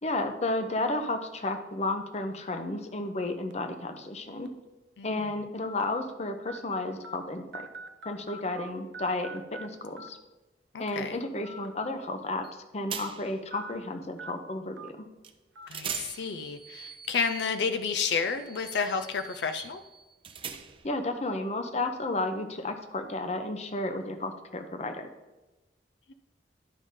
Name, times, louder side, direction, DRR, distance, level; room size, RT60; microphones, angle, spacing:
voice 1, 0.0-4.5 5.0-7.7 8.0-10.2 10.8-12.5 12.7-15.0 20.8-25.1, left 2 dB, 40° left, 7 dB, 0.7 m, -32 dB
sound 1, 3.5-3.7 4.4-4.5 5.7-5.8 6.5-6.6 7.0-7.2 7.5-8.7 8.9-9.7 10.0-10.1 11.4-11.7 12.0-12.1 13.5-13.7 14.2-14.3 14.8-14.9 15.6-15.7, right 2 dB, 85° right, 0.6 m, -43 dB
voice 2, 10.7-11.2 15.7-19.8, left 5 dB, 80° left, 9 dB, 0.5 m, -31 dB
sound 2, 12.4-12.6 12.9-13.4 15.2-15.4 15.7-21.0, right 7 dB, 30° right, 0.5 m, -42 dB
11.0 x 5.3 x 3.6 m, 1.1 s
head